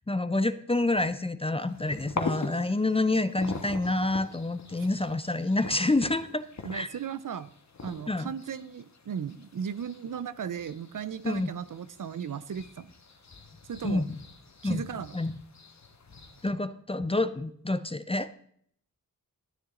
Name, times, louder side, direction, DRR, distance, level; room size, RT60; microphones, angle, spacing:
voice 1, 0.1-6.5 6.7-6.9 8.1-8.3 11.2-11.5 13.8-14.2 14.6-14.8 15.1-15.3 16.4-18.3, left 2 dB, 15° left, 13 dB, 0.5 m, -28 dB
sound 1, 1.6-16.5, left 4 dB, 50° left, 1.4 m, -43 dB
voice 2, 6.6-7.5 7.8-12.9 13.7-14.0 14.6-15.2, right 7 dB, 60° right, 15 dB, 0.6 m, -36 dB
12.5 x 10.0 x 3.8 m, 0.65 s
wide cardioid pair, 95°, 36 cm